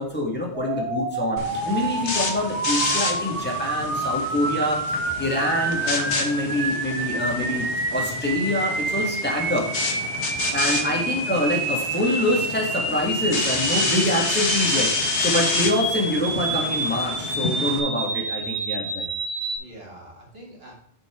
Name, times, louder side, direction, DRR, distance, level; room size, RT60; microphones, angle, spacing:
voice 1, 0.0-7.6 7.9-9.6 10.5-19.0, left 1 dB, 10° left, -2 dB, 2.0 m, -25 dB
sound 1, 0.5-19.6, right 3 dB, 85° right, 1.7 m, -28 dB
sound 2, 1.4-17.8, left 3 dB, 85° left, 1.5 m, -29 dB
voice 2, 10.1-10.9 19.6-20.7, right 1 dB, 60° right, -1 dB, 2.4 m, -45 dB
6.5 x 6.2 x 4.5 m, 0.67 s
omnidirectional pair, 1.1 m